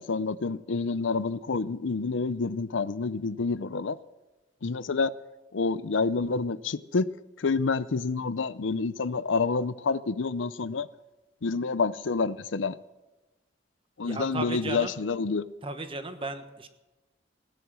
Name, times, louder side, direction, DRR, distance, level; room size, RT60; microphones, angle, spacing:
voice 1, 0.0-4.0 4.6-5.1 5.5-7.1 7.4-10.9 11.4-12.8 14.0-15.4, left 4 dB, 80° left, 0.6 m, -28 dB
voice 2, 14.0-14.9 15.6-16.7, right 2 dB, 30° right, 1.3 m, -35 dB
18.0 x 10.5 x 6.2 m
head